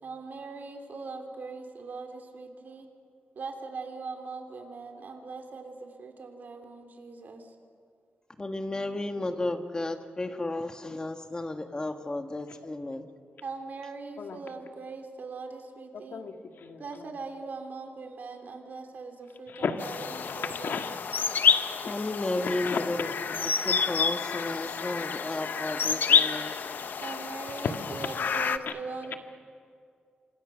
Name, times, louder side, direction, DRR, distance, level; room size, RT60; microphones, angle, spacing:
voice 1, 0.0-2.9 3.3-7.5 13.4-16.2 16.8-20.8 27.0-29.2, right 4 dB, 65° right, 5 dB, 3.3 m, -41 dB
voice 2, 8.4-13.1 21.9-23.1 23.4-26.5, left 2 dB, 25° left, 5 dB, 1.8 m, -33 dB
voice 3, 15.9-17.1 19.5-21.0 21.8-21.9 22.5-22.9 27.6-27.7 28.7-29.1, left 5 dB, 80° left, 5 dB, 1.8 m, -35 dB
sound 1, 19.8-28.6, left 6 dB, 65° left, 0.9 m, -28 dB
29.0 x 25.5 x 6.4 m, 2.2 s
wide cardioid pair, 110°, 3 cm